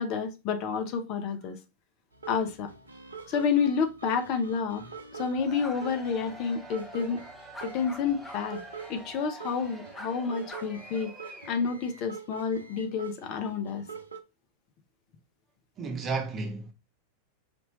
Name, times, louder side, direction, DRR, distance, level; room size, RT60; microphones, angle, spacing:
voice 1, 0.0-1.6 2.3-2.7 3.3-4.9 5.1-7.2 7.6-8.6 8.9-11.1 11.5-13.8, left 6 dB, 40° left, 0.7 m, -29 dB
sound 1, 2.1-14.2, right 5 dB, 80° right, 0.6 m, -44 dB
Cheering / Crowd, 5.1-11.8, right 1 dB, ahead, 1.7 m, -47 dB
sound 2, 5.5-5.8 7.5-8.4 8.7-8.8 9.9-10.1 10.5-11.1, equal, 15° left, 1.1 m, -44 dB
voice 2, 15.8-16.7, right 4 dB, 30° right, 1.0 m, -32 dB
5.2 x 3.0 x 2.9 m
figure-of-eight pair, 90°, 0 cm